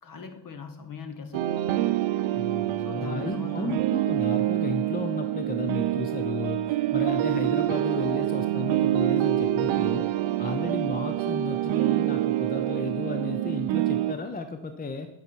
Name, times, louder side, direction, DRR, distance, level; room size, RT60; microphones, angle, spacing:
voice 1, 0.0-1.5 2.8-3.8, left 5 dB, 45° left, 6 dB, 1.3 m, -40 dB
sound 1, 1.3-14.1, right 14 dB, 70° right, 0.6 m, -26 dB
voice 2, 2.3-10.1 10.4-15.1, left 4 dB, 20° left, 8 dB, 0.6 m, -34 dB
9.4 x 5.6 x 4.6 m, 1.1 s
cardioid pair, 100°, 48 cm